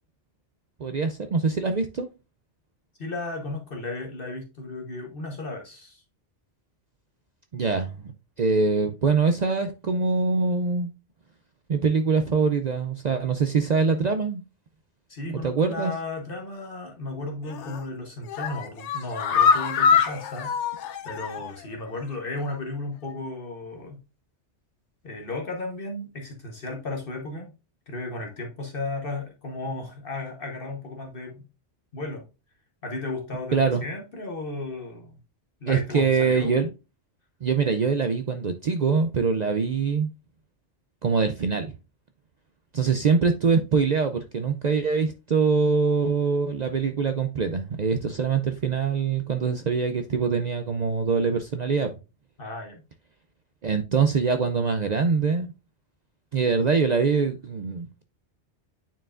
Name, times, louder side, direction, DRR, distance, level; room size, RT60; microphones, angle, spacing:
voice 1, 0.8-2.1 7.5-8.1 8.4-10.9 11.7-14.4 15.3-15.9 33.5-33.8 35.7-36.7 37.4-40.1 41.0-41.7 42.7-51.9 53.6-55.5 56.3-58.0, right 5 dB, 50° right, 0.5 m, -24 dB
voice 2, 3.0-6.0 15.1-20.6 21.0-24.0 25.0-27.5 27.9-31.4 31.9-32.2 32.8-35.1 35.6-36.6 52.4-52.8, left 2 dB, 50° left, 1.2 m, -34 dB
sound 1, 17.5-17.9 18.2-21.6 22.0-22.1 22.4-22.5, left 6 dB, 85° left, 1.0 m, -24 dB
9.1 x 4.6 x 2.4 m
omnidirectional pair, 1.2 m